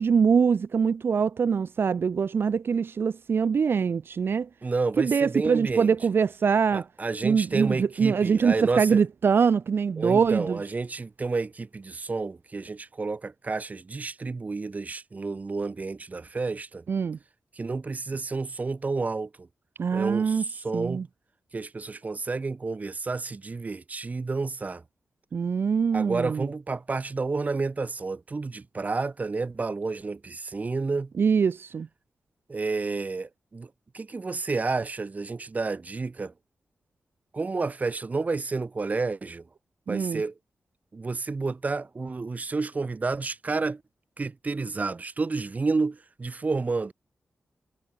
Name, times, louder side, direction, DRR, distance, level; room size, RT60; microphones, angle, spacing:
voice 1, 0.0-4.5 5.0-6.8 7.2-10.6 16.9-17.2 19.8-20.4 20.7-21.0 25.3-26.5 31.2-31.9 39.9-40.2, right 6 dB, 65° right, 1.3 m, -23 dB
voice 2, 4.6-5.9 6.7-9.0 10.0-16.8 17.6-19.5 19.9-21.1 21.5-24.8 25.9-31.1 32.5-36.3 37.3-39.4 39.9-40.3 40.9-43.8 44.2-46.9, right 3 dB, 40° right, 2.5 m, -30 dB
wide cardioid pair, 90°, 4 cm